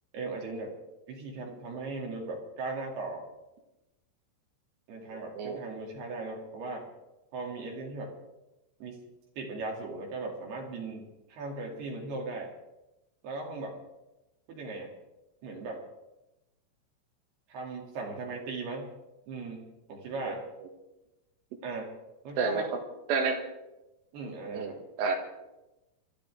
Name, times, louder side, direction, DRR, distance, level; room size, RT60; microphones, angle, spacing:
voice 1, 0.1-0.7 1.1-3.3 4.9-6.9 7.3-8.1 8.8-9.0 9.4-12.5 13.2-13.8 14.5-14.9 15.4-15.8 17.5-18.9 19.3-20.5 21.6-22.0 22.2-22.7 24.1-24.8, right 3 dB, 60° right, 0 dB, 3.9 m, -38 dB
voice 2, 5.1-5.6 20.3-20.4 22.4-22.6 23.1-23.4 24.5-24.7 25.0-25.2, right 5 dB, 80° right, 4 dB, 4.2 m, -29 dB
25.0 x 13.0 x 3.4 m, 0.98 s
omnidirectional pair, 5.7 m